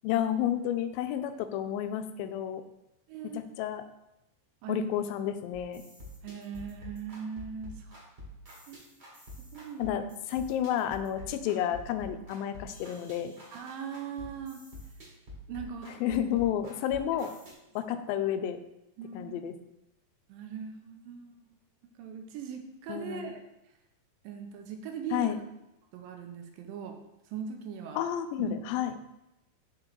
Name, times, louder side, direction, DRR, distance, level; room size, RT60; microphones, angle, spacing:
voice 1, 0.0-2.6 3.3-3.8 4.7-5.8 9.8-13.3 16.0-17.3 17.8-18.6 19.1-19.5 22.9-23.3 25.1-25.4 28.0-28.9, left 10 dB, 85° left, 9 dB, 2.3 m, -31 dB
voice 2, 3.1-3.5 4.6-5.0 6.2-7.9 8.7-8.9 9.5-10.1 13.5-14.6 15.5-16.2 17.9-18.0 19.0-19.4 20.3-21.5 21.8-23.4 24.2-25.4 25.9-27.0 27.3-28.0 28.4-28.6, right 6 dB, 80° right, 4 dB, 2.4 m, -40 dB
sound 1, 5.5-17.5, left 1 dB, 35° right, 1.0 m, -47 dB
6.4 x 3.8 x 4.4 m, 0.89 s
omnidirectional pair, 4.1 m